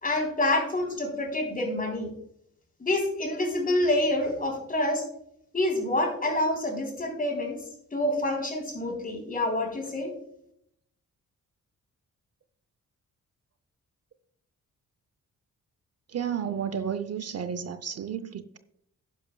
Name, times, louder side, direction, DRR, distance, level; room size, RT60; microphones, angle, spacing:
voice 1, 0.0-2.1 2.8-5.0 5.5-7.6 7.9-10.1, left 1 dB, 30° left, 3.5 m, -27 dB
voice 2, 16.1-18.6, right 8 dB, 55° right, 0.6 m, -32 dB
11.0 x 11.0 x 2.2 m
cardioid pair, 110°, 31 cm